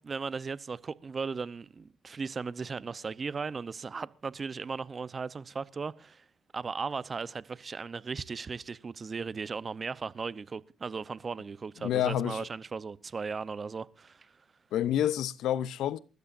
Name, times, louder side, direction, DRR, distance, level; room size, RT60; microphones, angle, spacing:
voice 1, 0.0-6.2 6.5-14.3, right 5 dB, 35° right, 0.8 m, -37 dB
voice 2, 11.8-12.5 14.7-16.0, left 11 dB, 80° left, 0.7 m, -28 dB
28.5 x 13.5 x 2.6 m
cardioid pair, 90°, 0 cm